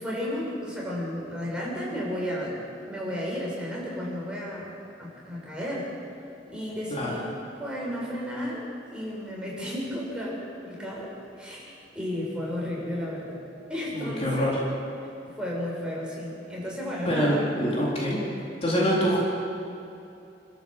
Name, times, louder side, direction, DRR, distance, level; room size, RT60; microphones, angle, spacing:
voice 1, 0.0-4.7 5.0-5.9 6.5-7.3 7.6-13.4 13.7-14.6 15.4-17.5, equal, 5° right, -5 dB, 6.4 m, -33 dB
voice 2, 13.9-14.6 17.1-18.2 18.6-19.2, equal, 35° left, -5 dB, 4.2 m, -25 dB
29.0 x 14.0 x 7.5 m, 2.8 s
head